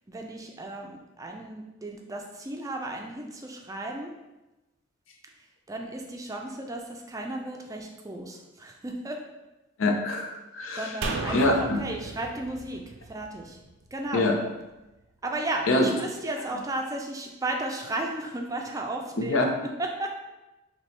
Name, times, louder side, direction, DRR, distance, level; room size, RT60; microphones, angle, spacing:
voice 1, 0.1-4.1 5.7-9.2 10.8-13.6 13.9-14.3 15.2-19.5 19.8-20.2, right 2 dB, 15° right, 2 dB, 0.4 m, -34 dB
voice 2, 9.8-10.9 11.3-11.8 14.1-14.3 15.7-15.9 19.2-19.4, left 2 dB, 90° left, 2 dB, 0.6 m, -24 dB
sound 1, 11.0-14.3 14.6-14.7, right 3 dB, 75° right, 0.5 m, -36 dB
4.4 x 2.9 x 3.2 m, 1.0 s
head